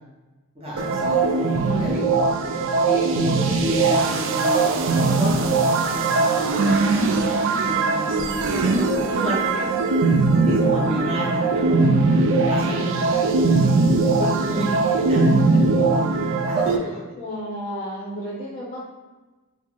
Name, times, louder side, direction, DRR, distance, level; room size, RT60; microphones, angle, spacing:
voice 1, 0.5-1.2 1.6-2.0 2.8-4.6 5.0-9.7 10.3-11.9 12.5-14.7 15.1-15.2 15.9-16.0 16.5-17.0, equal, 30° right, -6 dB, 0.8 m, -31 dB
sound 1, 0.8-16.8, right 3 dB, 60° right, 0.4 m, -20 dB
voice 2, 9.1-9.4 10.4-10.9 16.5-18.8, equal, 35° left, -5 dB, 0.6 m, -33 dB
4.4 x 2.0 x 3.6 m, 1.2 s
head